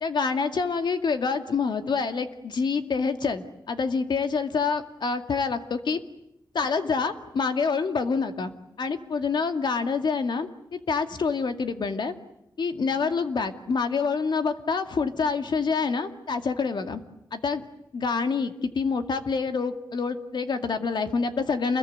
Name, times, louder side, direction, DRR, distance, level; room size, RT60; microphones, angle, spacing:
voice 1, 0.0-6.0 6.5-8.5 8.8-12.1 12.6-17.0 17.3-17.6 17.9-21.8, left 5 dB, 75° left, 7 dB, 2.2 m, -27 dB
28.5 x 21.5 x 9.4 m, 0.82 s
cardioid pair, 70°, 8 cm